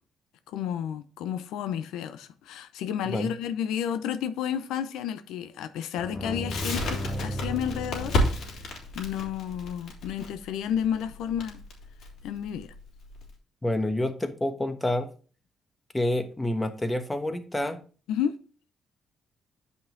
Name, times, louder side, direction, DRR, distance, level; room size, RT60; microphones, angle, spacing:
voice 1, 0.5-8.2 8.5-8.7 8.9-11.6 12.2-12.7 18.1-18.3, left 9 dB, 90° left, 0.7 m, -31 dB
sound 1, 6.0-9.1, left 1 dB, 30° left, 2.0 m, -35 dB
Crackle, 6.5-13.3, left 1 dB, 75° left, 3.2 m, -31 dB
voice 2, 13.6-15.1 15.9-17.8, left 1 dB, 15° left, 1.2 m, -28 dB
9.0 x 5.4 x 3.9 m
cardioid pair, 90°, 0 cm